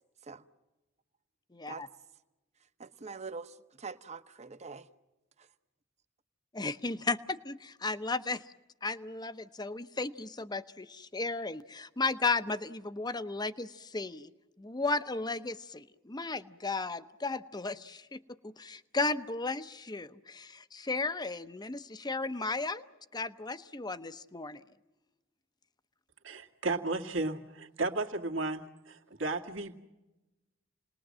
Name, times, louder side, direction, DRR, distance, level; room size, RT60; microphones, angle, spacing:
voice 1, 1.5-1.9 6.5-8.4 8.8-14.3 14.6-22.8 23.1-24.6, left 3 dB, 20° left, 0.8 m, -35 dB
voice 2, 2.8-4.9, right 4 dB, 35° right, 1.0 m, -44 dB
voice 3, 26.2-29.8, right 2 dB, 70° right, 2.2 m, -34 dB
29.5 x 20.0 x 7.5 m
head